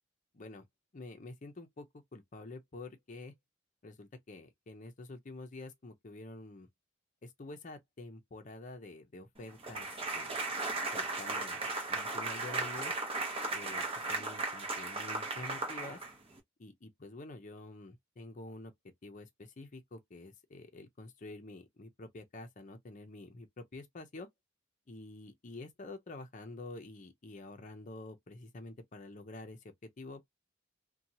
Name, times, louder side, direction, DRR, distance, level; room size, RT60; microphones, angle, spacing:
voice 1, 0.3-0.6 0.9-3.3 3.8-6.7 7.2-10.4 10.9-12.9 13.5-16.0 16.6-18.7 19.0-24.3 24.9-30.3, left 2 dB, 40° left, 0.6 m, -48 dB
sound 1, 9.6-16.4, right 3 dB, 30° right, 0.8 m, -36 dB
2.8 x 2.2 x 2.7 m
head